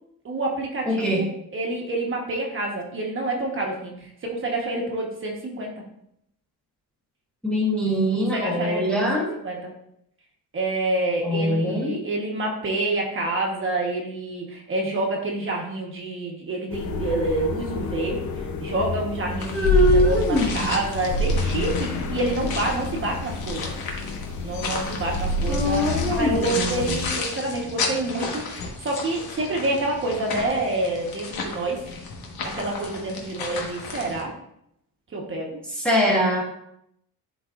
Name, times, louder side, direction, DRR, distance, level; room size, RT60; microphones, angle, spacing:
voice 1, 0.2-1.3 1.5-5.7 8.3-9.7 10.5-23.7 24.4-31.8 32.4-34.3 35.1-35.6, right 2 dB, 35° right, 0 dB, 1.2 m, -28 dB
voice 2, 0.8-1.3 7.4-9.3 11.2-12.0 19.5-20.7 25.5-27.0 35.8-36.4, equal, 5° left, -4 dB, 1.0 m, -22 dB
sound 1, 16.7-27.1, left 3 dB, 50° left, 0.7 m, -28 dB
sound 2, 19.4-34.2, left 4 dB, 70° left, 1.4 m, -34 dB
11.5 x 4.0 x 2.4 m, 0.76 s
cardioid pair, 175°, 38 cm